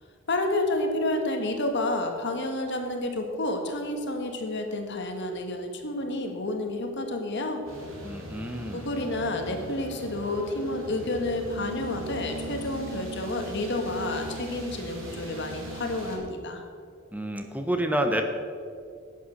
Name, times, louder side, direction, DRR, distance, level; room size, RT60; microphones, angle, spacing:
voice 1, 0.3-7.6 8.7-16.6, left 2 dB, 60° left, 4 dB, 1.6 m, -30 dB
sound 1, 7.7-16.2, right 1 dB, 75° right, 2.8 m, -39 dB
voice 2, 8.0-8.9 17.1-18.2, right 1 dB, 10° right, 5 dB, 0.8 m, -28 dB
11.5 x 8.6 x 6.5 m, 2.3 s
head